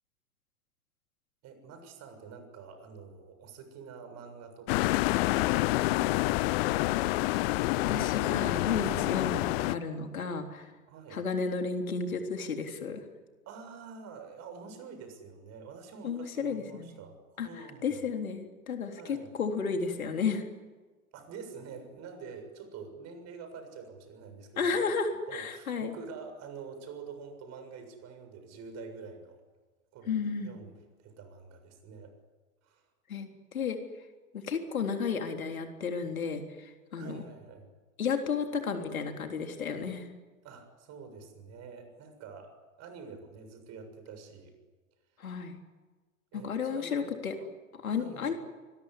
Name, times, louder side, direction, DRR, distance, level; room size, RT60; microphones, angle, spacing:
voice 1, 1.4-6.5 10.9-11.2 13.5-18.0 18.9-19.3 21.1-25.0 25.3-29.4 29.9-32.1 32.6-32.8 36.0-36.1 37.0-37.7 40.4-42.5 42.8-44.5 46.3-47.5 47.9-48.3, right 5 dB, 40° right, 7 dB, 7.2 m, -47 dB
sound 1, 4.7-9.8, left 19 dB, 45° left, 0.9 m, -27 dB
voice 2, 7.9-10.7 11.1-13.0 16.0-16.9 17.4-20.4 24.6-25.9 30.1-30.5 33.1-33.8 34.3-37.2 38.0-40.1 45.2-45.6 46.3-47.3 47.8-48.3, left 5 dB, 75° left, 5 dB, 3.7 m, -33 dB
25.0 x 22.0 x 9.8 m, 1.3 s
figure-of-eight pair, 95°, 42 cm